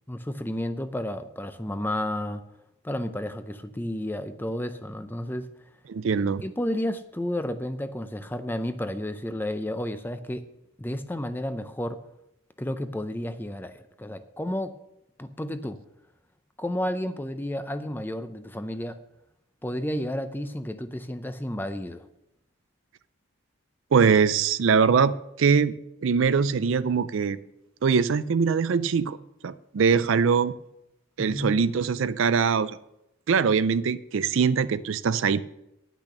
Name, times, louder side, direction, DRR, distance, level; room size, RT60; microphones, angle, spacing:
voice 1, 0.1-2.4 2.8-5.5 6.4-10.4 10.8-12.0 12.6-14.7 15.2-15.8 16.6-19.0 19.6-22.0 31.2-31.6, left 1 dB, 10° left, 10 dB, 0.5 m, -31 dB
voice 2, 5.9-6.4 23.9-25.7 26.0-27.4 27.8-29.2 29.4-30.5 31.2-32.8 33.3-35.4, right 6 dB, 65° right, 15 dB, 0.4 m, -22 dB
10.5 x 6.1 x 6.6 m, 0.86 s
head